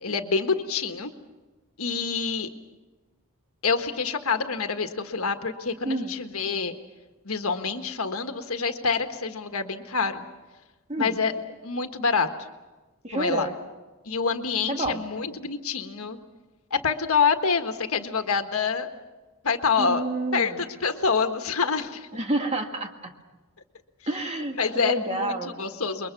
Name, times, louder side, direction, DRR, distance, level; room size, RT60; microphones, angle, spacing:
voice 1, 0.0-1.1 1.8-2.5 3.6-6.7 7.2-10.2 11.0-11.3 11.6-12.3 13.1-13.5 14.0-16.2 16.7-18.9 19.4-20.0 20.3-22.1 24.5-26.1, left 5 dB, 75° left, 7 dB, 1.5 m, -26 dB
voice 2, 5.8-6.1 10.9-11.2 13.0-13.6 14.7-15.0 19.8-20.6 22.1-23.1 24.1-25.5, right 2 dB, 30° right, 4 dB, 1.8 m, -29 dB
27.5 x 22.5 x 6.0 m, 1.2 s
head